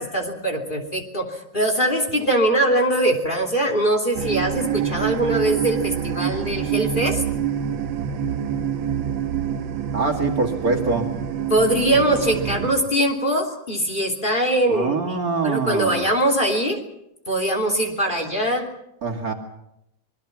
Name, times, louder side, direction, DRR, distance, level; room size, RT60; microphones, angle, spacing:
voice 1, 0.0-7.2 11.5-15.2 15.4-16.8 17.3-18.7, right 1 dB, 25° left, 3 dB, 3.2 m, -22 dB
sound 1, 4.1-12.8, right 9 dB, 85° right, 1.9 m, -26 dB
voice 2, 9.9-11.1 14.7-16.0 19.0-19.3, right 3 dB, 50° right, 3 dB, 2.8 m, -24 dB
27.0 x 22.0 x 6.0 m, 0.81 s
omnidirectional pair, 2.1 m